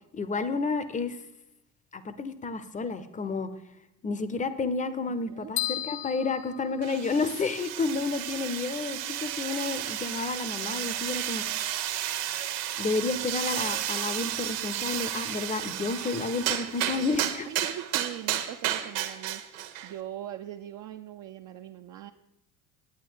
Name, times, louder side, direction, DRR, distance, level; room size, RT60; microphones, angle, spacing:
voice 1, 0.1-1.2 1.9-3.5 4.0-11.7 12.8-17.5, left 4 dB, 15° left, 13 dB, 0.6 m, -31 dB
sound 1, 5.6-7.5, left 14 dB, 55° left, 0.7 m, -34 dB
Welding and Hammering, 6.8-19.9, right 12 dB, 60° right, 1.1 m, -32 dB
voice 2, 17.5-22.1, right 12 dB, 40° right, 6 dB, 0.5 m, -41 dB
9.5 x 8.5 x 4.5 m, 0.86 s
figure-of-eight pair, 70°, 49 cm